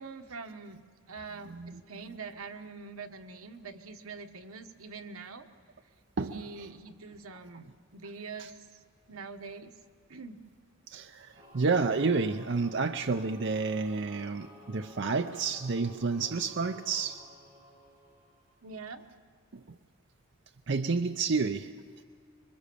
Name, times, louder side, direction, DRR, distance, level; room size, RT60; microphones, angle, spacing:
voice 1, 0.0-5.5 6.3-8.8 9.1-9.7 10.1-10.4 18.6-19.0, right 4 dB, 90° right, 6 dB, 1.3 m, -44 dB
voice 2, 1.5-1.8 2.1-2.2 6.2-6.4 8.4-8.5 10.9-17.2 19.5-19.6 20.7-21.7, right 4 dB, 55° right, 6 dB, 0.6 m, -30 dB
Singing / Musical instrument, 11.3-18.8, left 1 dB, 15° right, 8.0 m, -54 dB
26.5 x 23.0 x 6.9 m, 2.1 s
head